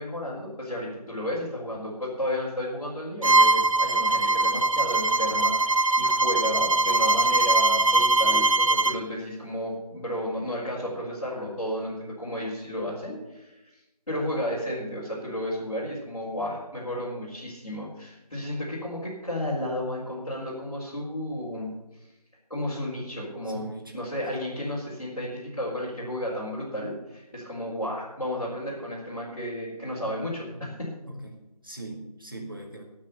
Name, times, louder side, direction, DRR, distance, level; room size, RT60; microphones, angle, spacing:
voice 1, 0.0-13.5 14.1-21.7 22.5-23.7 23.9-30.9, equal, 50° left, -8 dB, 4.5 m, -32 dB
Bowed string instrument, 3.2-9.0, right 2 dB, 55° right, 0.5 m, -21 dB
voice 2, 23.4-24.0 30.5-30.8 31.1-32.8, right 2 dB, 35° right, 1 dB, 1.9 m, -41 dB
17.0 x 6.2 x 6.9 m, 0.99 s
figure-of-eight pair, 175°, 21 cm